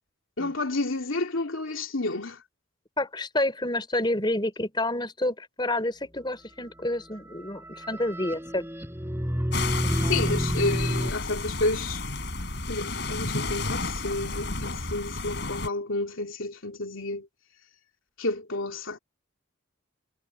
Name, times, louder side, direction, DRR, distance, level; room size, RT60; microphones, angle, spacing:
voice 1, 0.4-2.4 10.1-12.0 12.7-17.3 18.2-19.0, left 2 dB, 80° left, 2.9 m, -30 dB
voice 2, 3.0-8.7 9.8-10.4, left 1 dB, 20° left, 3.8 m, -29 dB
sound 1, 7.1-11.1, equal, 10° right, 6.0 m, -29 dB
sound 2, 9.5-15.7, left 3 dB, 55° left, 4.9 m, -32 dB
head